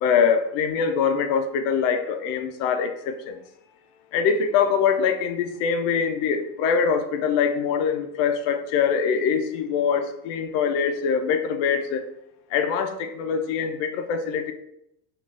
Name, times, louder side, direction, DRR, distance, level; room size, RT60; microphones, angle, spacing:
voice 1, 0.0-3.4 4.1-12.0 12.5-14.5, left 6 dB, 85° left, 7 dB, 0.5 m, -23 dB
3.7 x 2.3 x 2.4 m, 0.80 s
cardioid pair, 165°, 37 cm